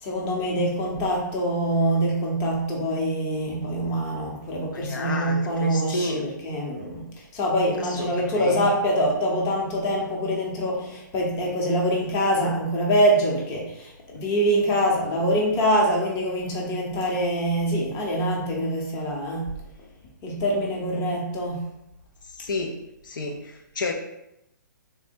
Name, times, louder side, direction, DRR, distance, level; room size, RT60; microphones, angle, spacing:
voice 1, 0.0-19.5 20.2-21.6, equal, 25° left, -2 dB, 0.8 m, -24 dB
voice 2, 4.7-6.2 7.8-8.7 22.4-22.7 23.0-23.9, left 2 dB, 75° left, 2 dB, 0.6 m, -31 dB
3.6 x 2.1 x 4.3 m, 0.84 s
hypercardioid pair, 150°, 11 cm